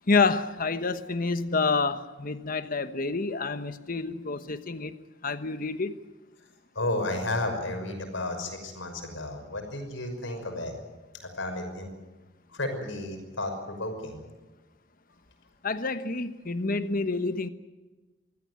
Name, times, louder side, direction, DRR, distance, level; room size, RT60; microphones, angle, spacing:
voice 1, 0.1-4.9 5.2-5.9 15.6-17.5, left 4 dB, 45° left, 11 dB, 1.2 m, -28 dB
voice 2, 6.7-10.7 11.4-11.9 12.5-14.2, left 2 dB, 80° left, 5 dB, 5.9 m, -32 dB
24.5 x 16.0 x 9.7 m, 1.2 s
head